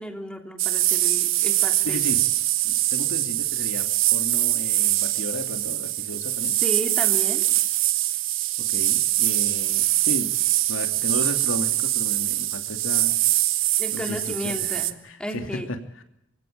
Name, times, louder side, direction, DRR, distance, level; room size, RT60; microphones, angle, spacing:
voice 1, 0.0-2.0 6.6-7.5 13.8-14.9 15.2-15.7, equal, 5° left, 4 dB, 3.0 m, -33 dB
sound 1, 0.6-14.9, right 15 dB, 85° right, 1.4 m, -23 dB
voice 2, 1.8-2.2 2.6-6.6 8.6-10.3 10.7-13.2 13.9-16.0, left 1 dB, 85° left, 6 dB, 2.9 m, -34 dB
27.5 x 17.0 x 8.9 m, 0.82 s
head